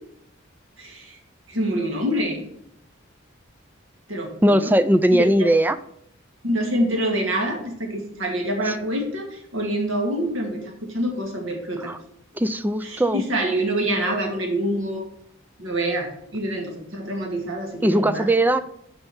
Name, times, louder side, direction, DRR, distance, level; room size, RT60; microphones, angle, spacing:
voice 1, 0.8-1.2 1.5-2.4 4.1-4.7 5.1-5.5 6.4-11.9 12.8-15.1 15.6-18.3, right 1 dB, 80° right, 1 dB, 2.1 m, -26 dB
voice 2, 4.4-5.8 8.7-8.8 11.9-12.0 12.4-13.2 17.8-18.6, right 1 dB, 10° right, 12 dB, 0.4 m, -19 dB
7.0 x 5.4 x 7.1 m, 0.72 s
head